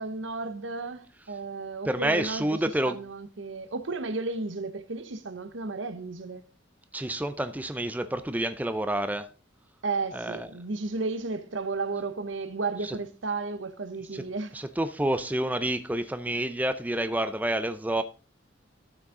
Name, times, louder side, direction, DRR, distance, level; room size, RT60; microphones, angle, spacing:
voice 1, 0.0-2.6 2.9-6.4 9.8-14.5, right 3 dB, 75° right, 0.9 m, -33 dB
voice 2, 1.9-3.0 6.9-9.3 10.1-10.5 12.8-13.0 14.1-14.2 14.5-18.0, right 1 dB, 10° right, 0.4 m, -28 dB
12.5 x 6.3 x 3.7 m
head